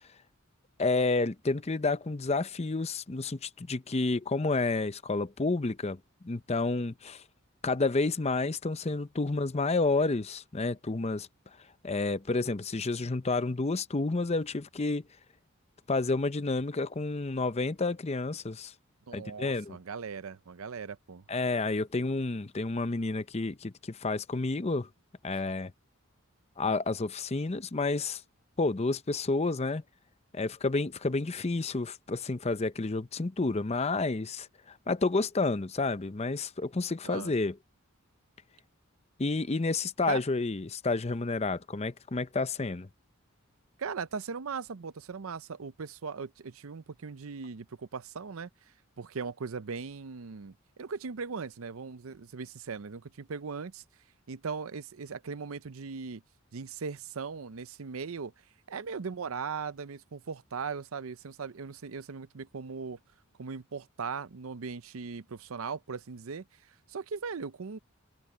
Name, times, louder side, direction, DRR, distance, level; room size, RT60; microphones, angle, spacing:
voice 1, 0.8-6.0 6.2-7.2 7.6-11.3 11.8-15.0 15.9-18.7 19.1-19.8 21.3-24.9 25.2-25.7 26.6-28.2 28.6-29.8 30.3-37.5 39.2-42.9, left 3 dB, 30° left, 0.6 m, -30 dB
voice 2, 19.1-21.2 37.0-37.3 40.1-40.2 43.8-48.5 49.0-53.8 54.3-56.2 56.5-58.3 58.7-63.0 63.4-67.8, right 5 dB, 75° right, 0.6 m, -39 dB
open air
head